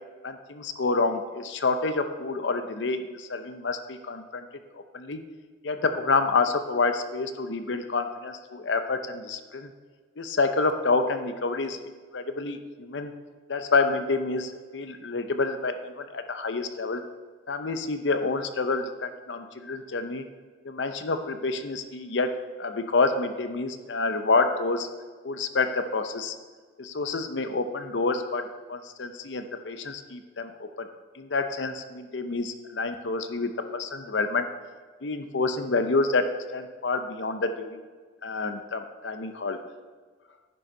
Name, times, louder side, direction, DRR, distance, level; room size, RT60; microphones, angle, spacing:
voice 1, 0.2-4.4 4.9-5.2 5.6-9.7 10.2-13.1 13.5-17.0 17.5-20.2 20.6-22.3 22.6-24.9 25.2-26.4 26.8-30.9 31.1-34.5 35.0-36.3 36.5-37.8 38.2-39.6, left 3 dB, 75° left, 8 dB, 0.7 m, -28 dB
10.5 x 6.5 x 5.4 m, 1.5 s
head